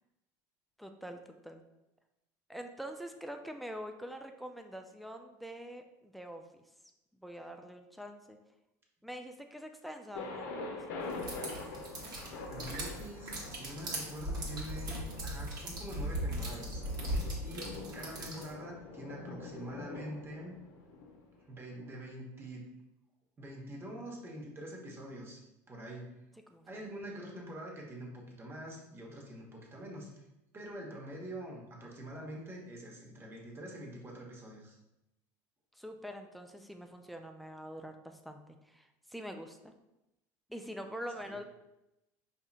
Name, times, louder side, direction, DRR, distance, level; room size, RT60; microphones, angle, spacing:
voice 1, 0.8-1.6 2.5-6.4 7.2-8.4 9.0-11.5 17.1-17.4 26.5-26.8 35.7-39.7 40.5-41.4, equal, ahead, 5 dB, 0.4 m, -45 dB
Thunder, 10.1-21.9, left 3 dB, 80° left, 0.6 m, -45 dB
sound 1, 11.1-18.5, right 1 dB, 45° right, 1.3 m, -39 dB
voice 2, 12.5-16.8 17.4-20.5 21.5-22.6 23.4-25.4 25.7-26.1 26.7-30.1 30.5-34.8 41.2-41.4, right 1 dB, 25° right, -1 dB, 1.1 m, -45 dB
4.8 x 2.8 x 2.4 m, 0.91 s
supercardioid pair, 95°, 9 cm